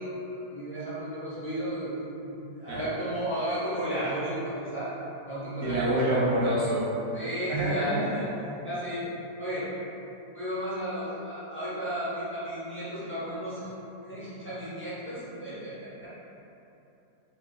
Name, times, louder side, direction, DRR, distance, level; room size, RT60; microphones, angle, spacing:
voice 1, 0.0-1.9 2.2-4.9 5.2-6.3 7.1-8.3 8.6-9.1 9.4-9.7 10.3-13.7 14.0-16.1, right 1 dB, 10° left, -13 dB, 0.5 m, -34 dB
voice 2, 5.6-7.0 7.5-8.1, right 1 dB, 70° right, -6 dB, 1.0 m, -26 dB
3.0 x 2.3 x 3.7 m, 2.9 s
omnidirectional pair, 1.8 m